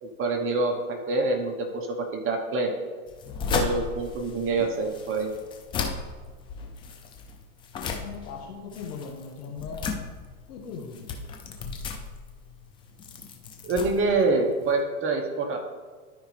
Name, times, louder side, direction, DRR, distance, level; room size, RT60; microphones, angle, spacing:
voice 1, 0.0-2.7 3.5-5.3 13.6-15.6, right 3 dB, 30° right, 3 dB, 1.0 m, -26 dB
sound 1, 3.1-14.8, left 5 dB, 15° left, 0.3 m, -35 dB
voice 2, 7.9-9.9 10.5-11.2, left 5 dB, 80° left, 0 dB, 1.7 m, -39 dB
12.5 x 5.0 x 3.3 m, 1.5 s
supercardioid pair, 125°, 45 cm